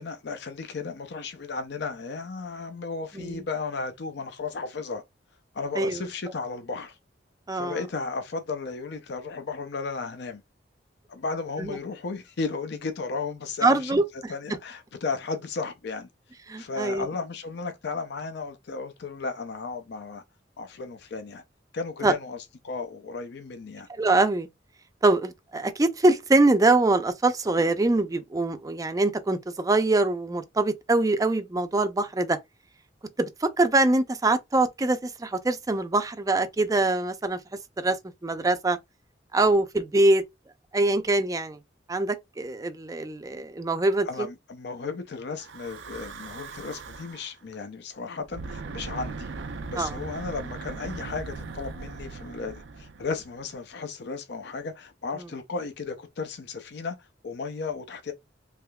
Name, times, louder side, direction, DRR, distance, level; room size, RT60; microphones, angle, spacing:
voice 1, 0.0-5.0 5.5-7.0 7.5-10.4 11.1-14.0 14.3-16.1 16.6-20.2 20.6-21.4 21.7-23.9 44.0-49.3 49.7-58.1, left 4 dB, 70° left, 0.5 m, -34 dB
voice 2, 13.6-14.0 16.5-17.1 22.0-22.1 23.9-24.5 25.0-32.4 33.2-37.4 37.8-38.0 38.2-38.8 39.3-40.2 40.7-41.6 41.9-44.1 49.8-49.9, right 2 dB, 20° right, 0.4 m, -23 dB
Breathing / Wind, 45.4-47.3 48.2-53.6, right 4 dB, 75° right, 0.5 m, -39 dB
3.5 x 3.2 x 2.3 m
head